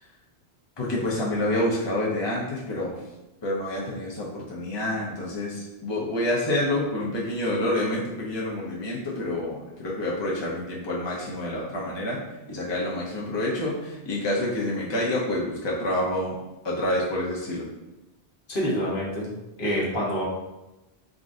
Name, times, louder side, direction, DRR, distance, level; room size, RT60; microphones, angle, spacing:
voice 1, 0.8-3.0 3.4-16.4 16.6-17.6, left 1 dB, 30° left, -5 dB, 0.7 m, -28 dB
voice 2, 18.5-19.3 19.6-20.2, equal, 55° left, -5 dB, 1.2 m, -26 dB
3.8 x 3.7 x 2.6 m, 1.0 s
omnidirectional pair, 1.1 m